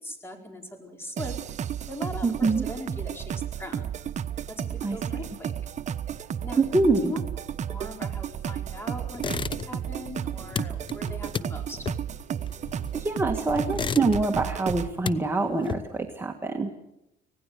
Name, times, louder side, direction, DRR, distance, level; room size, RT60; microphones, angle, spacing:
voice 1, 0.0-1.3 1.9-3.3 3.6-3.9 4.5-5.5 6.4-6.6 7.0-7.2 7.7-11.8, left 1 dB, 15° left, 3 dB, 4.7 m, -40 dB
sound 1, 1.2-14.9, right 9 dB, 45° right, 1.0 m, -33 dB
voice 2, 2.2-2.6 4.8-5.0 6.6-7.1 12.9-16.7, right 3 dB, 15° right, 3 dB, 1.6 m, -25 dB
sound 2, 9.1-9.9 10.2-13.1 13.6-14.5 14.8-16.1, left 6 dB, 30° left, 0.7 m, -33 dB
25.5 x 18.0 x 6.7 m, 0.86 s
cardioid pair, 110°, 17 cm